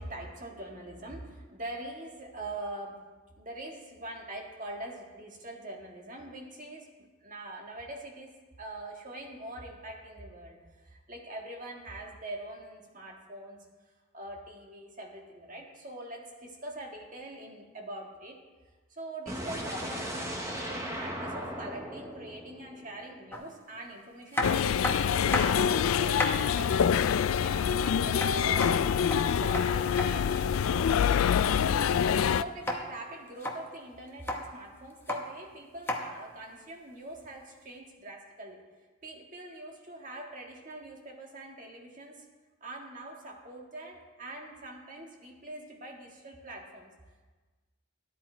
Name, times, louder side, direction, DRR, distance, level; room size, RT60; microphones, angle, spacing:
voice 1, 0.0-3.0 3.4-13.6 14.1-18.4 18.9-28.9 29.4-30.9 32.2-38.6 39.0-42.2 42.6-46.9, right 1 dB, 40° right, 0 dB, 1.7 m, -43 dB
sound 1, 19.3-23.2, equal, 15° right, 1.1 m, -37 dB
sound 2, 23.3-23.4 24.3-25.7 26.0-26.5 28.2-30.1 32.6-32.8 33.3-33.6 34.1-34.4 34.9-35.2 35.9-36.0 37.2-37.3, left 1 dB, 10° left, 0.9 m, -32 dB
sound 3, 24.4-32.4, left 7 dB, 85° left, 0.3 m, -26 dB
13.0 x 10.0 x 4.5 m, 1.3 s
head